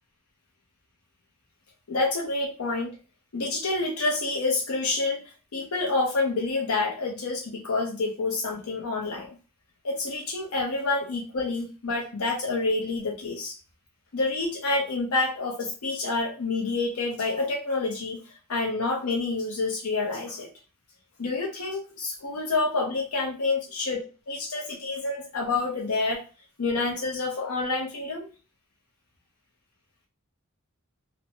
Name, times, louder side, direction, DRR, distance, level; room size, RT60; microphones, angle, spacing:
voice 1, 1.9-2.9 3.3-5.2 5.5-9.4 9.8-13.5 14.1-18.2 18.5-20.5 21.2-26.2 26.6-28.3, left 3 dB, 80° left, -1 dB, 0.7 m, -28 dB
3.0 x 2.0 x 2.7 m, 0.34 s
head